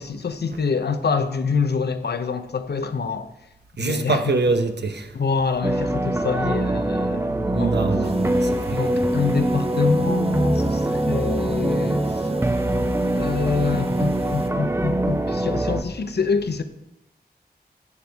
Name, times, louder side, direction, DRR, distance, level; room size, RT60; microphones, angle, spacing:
voice 1, 0.0-3.3 3.8-4.4 5.1-7.7 8.7-12.3 13.1-16.6, left 5 dB, 80° left, 0.8 m, -26 dB
voice 2, 3.8-5.1 7.5-8.9, right 3 dB, 90° right, 1.0 m, -24 dB
sound 1, 5.6-15.8, right 1 dB, 15° right, 0.7 m, -23 dB
sound 2, 8.0-14.5, right 2 dB, 35° right, 1.0 m, -38 dB
13.5 x 7.9 x 3.5 m
wide cardioid pair, 70°, 17 cm